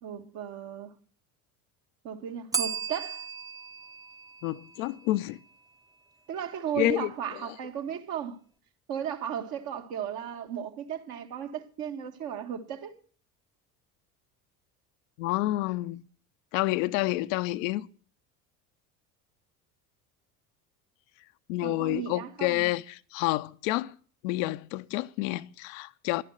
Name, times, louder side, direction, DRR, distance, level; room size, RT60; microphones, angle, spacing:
voice 1, 0.0-0.9 2.0-3.3 6.3-8.4 8.9-13.0 21.6-22.6, right 8 dB, 50° right, 1.7 m, -35 dB
Bell, 2.5-5.3, right 6 dB, 10° right, 0.8 m, -36 dB
voice 2, 4.4-5.4 6.8-7.1 15.2-16.0 16.5-17.9 21.5-23.9 24.2-26.2, left 18 dB, 55° left, 0.7 m, -29 dB
12.0 x 10.0 x 7.8 m
figure-of-eight pair, 60°, 47 cm